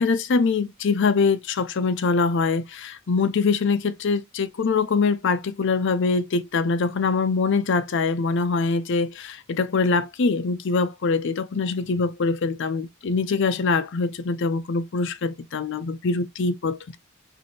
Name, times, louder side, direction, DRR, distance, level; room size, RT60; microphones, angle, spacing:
voice 1, 0.0-17.0, left 4 dB, 60° left, 0.5 m, -23 dB
4.7 x 2.6 x 2.7 m
head